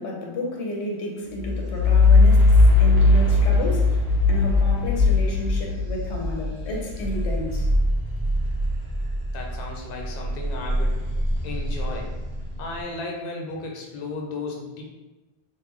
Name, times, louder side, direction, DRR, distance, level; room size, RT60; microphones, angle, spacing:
voice 1, 0.0-2.5 2.8-4.0 4.3-7.7, left 1 dB, 90° left, 0 dB, 1.0 m, -31 dB
sound 1, 1.4-9.6 10.0-12.6, left 2 dB, 25° right, 0.7 m, -20 dB
voice 2, 9.3-11.0 11.4-12.1 12.6-14.8, left 2 dB, 60° left, 0 dB, 0.8 m, -34 dB
3.6 x 2.1 x 3.1 m, 1.1 s
omnidirectional pair, 1.1 m